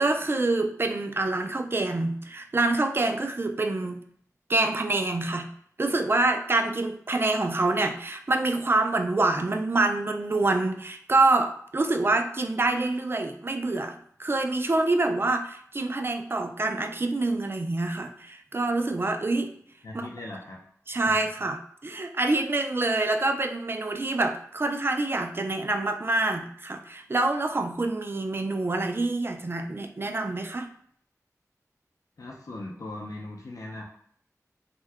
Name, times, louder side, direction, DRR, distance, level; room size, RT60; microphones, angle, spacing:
voice 1, 0.0-4.0 4.5-5.5 5.8-19.5 19.9-20.1 20.9-30.7, right 2 dB, 40° right, 5 dB, 0.3 m, -26 dB
voice 2, 19.8-20.6 20.9-21.0 32.2-33.8, left 2 dB, 70° left, -2 dB, 0.5 m, -39 dB
2.7 x 2.2 x 3.3 m, 0.64 s
wide cardioid pair, 70°, 6 cm